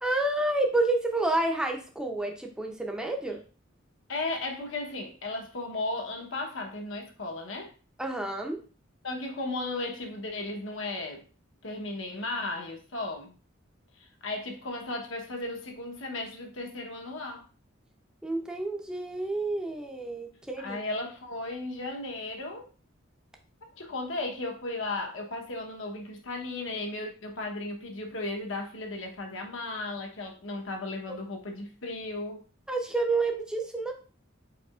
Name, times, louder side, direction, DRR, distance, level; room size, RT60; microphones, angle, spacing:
voice 1, 0.0-3.4 8.0-8.6 18.2-20.8 31.1-31.2 32.7-33.9, right 2 dB, 5° right, 1 dB, 0.6 m, -29 dB
voice 2, 4.1-7.7 9.0-11.2 11.6-13.3 14.0-17.4 20.6-22.7 23.8-32.4, left 2 dB, 70° left, 2 dB, 1.0 m, -35 dB
4.8 x 4.5 x 2.4 m, 0.37 s
head